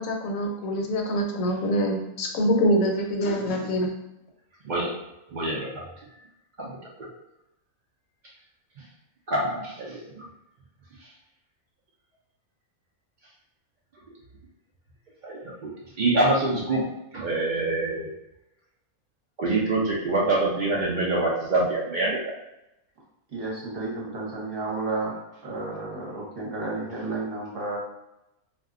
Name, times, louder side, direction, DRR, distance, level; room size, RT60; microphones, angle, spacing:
voice 1, 0.0-3.9, equal, 70° left, 2 dB, 1.0 m, -25 dB
voice 2, 5.3-5.8 6.6-7.1 9.3-10.2 15.2-18.1 19.4-22.2, right 2 dB, 85° right, -5 dB, 0.4 m, -26 dB
voice 3, 23.3-25.1 25.4-27.8, right 3 dB, 45° right, -5 dB, 1.0 m, -32 dB
2.5 x 2.1 x 3.6 m, 0.90 s
omnidirectional pair, 1.5 m